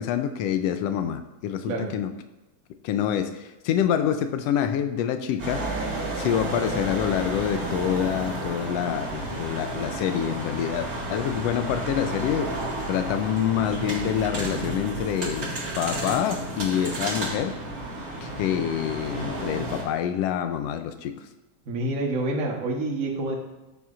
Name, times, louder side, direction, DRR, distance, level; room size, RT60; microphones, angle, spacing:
voice 1, 0.0-2.1 2.8-5.7 6.1-12.6 12.9-15.5 15.7-17.6 18.2-21.3, left 9 dB, 80° left, 8 dB, 1.5 m, -26 dB
sound 1, 5.4-19.8, right 1 dB, 35° right, 1.9 m, -32 dB
voice 2, 21.7-23.3, right 2 dB, 65° right, 0 dB, 0.8 m, -27 dB
14.0 x 7.2 x 2.5 m, 1.0 s
omnidirectional pair, 3.4 m